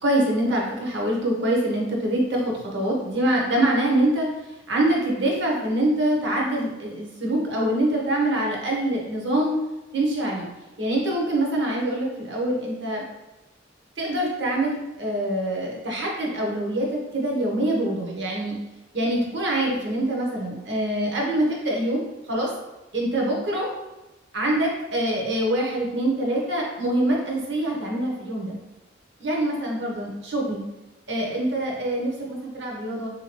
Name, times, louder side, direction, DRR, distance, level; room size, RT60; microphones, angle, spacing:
voice 1, 0.0-9.6 9.9-10.5 10.8-13.0 14.0-18.6 18.9-22.5 22.9-23.7 24.3-28.5 29.2-30.6 31.1-33.1, right 1 dB, 65° right, -2 dB, 0.8 m, -25 dB
3.1 x 2.8 x 2.9 m, 1.0 s
head